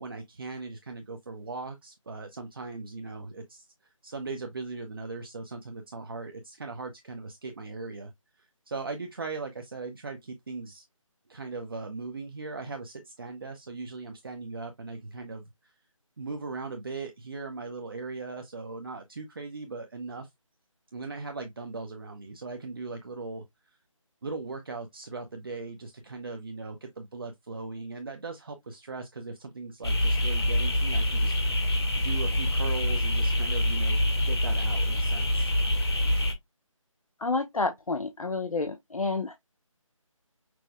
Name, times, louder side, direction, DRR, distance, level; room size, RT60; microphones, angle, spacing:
voice 1, 0.0-3.6 4.0-8.1 8.4-10.8 11.3-15.7 16.2-20.3 20.9-23.4 24.2-31.7 32.0-35.5, right 3 dB, 40° right, 0.7 m, -39 dB
sound 1, 29.8-36.3, left 1 dB, 50° left, 1.4 m, -25 dB
voice 2, 37.2-39.4, left 3 dB, 90° left, 0.8 m, -29 dB
6.0 x 2.1 x 3.4 m
figure-of-eight pair, 165°, 17 cm